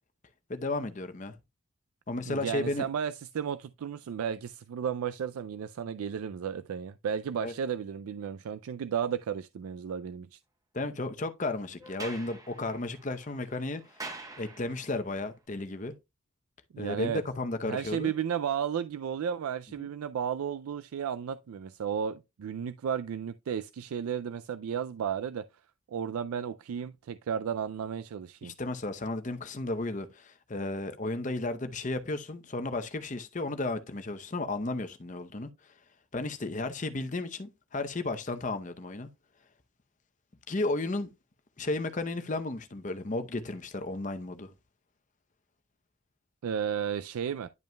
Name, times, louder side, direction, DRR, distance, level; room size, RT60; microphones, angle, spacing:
voice 1, 0.5-1.4 2.1-2.9 7.4-7.5 10.7-13.8 14.4-15.9 16.8-18.1 19.8-19.9 28.4-35.5 36.1-39.1 40.5-41.1 41.6-44.5, left 2 dB, 35° left, 0.7 m, -33 dB
voice 2, 2.3-10.4 16.7-17.2 17.7-25.5 25.9-28.5 46.4-47.5, right 8 dB, 85° right, 0.4 m, -33 dB
Sliding door, 11.8-15.1, right 3 dB, 15° right, 0.9 m, -45 dB
10.5 x 5.3 x 2.2 m
head